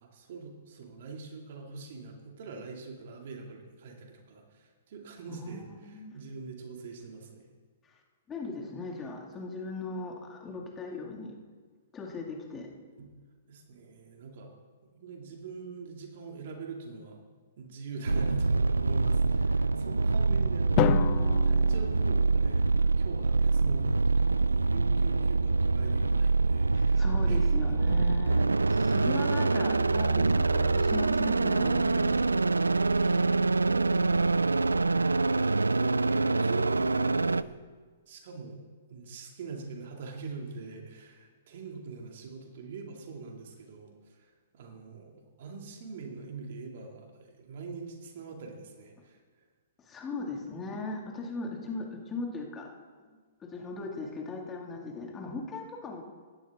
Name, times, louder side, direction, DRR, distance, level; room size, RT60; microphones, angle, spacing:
voice 1, 0.0-7.5 13.0-13.1 13.5-14.5 14.8-17.2 17.6-27.5 32.9-33.3 35.3-37.6 38.1-38.6 38.9-49.2, right 4 dB, 55° right, 2 dB, 2.4 m, -43 dB
voice 2, 5.3-6.1 8.3-11.3 11.9-12.7 26.7-32.5 49.9-52.7 53.5-56.0, left 3 dB, 20° left, 1 dB, 2.1 m, -38 dB
sound 1, 18.1-37.4, right 3 dB, 90° right, 0.3 m, -25 dB
Drum, 20.8-22.9, left 17 dB, 35° left, 0.4 m, -30 dB
16.0 x 11.5 x 3.6 m, 1.5 s
hypercardioid pair, 120°, 0 cm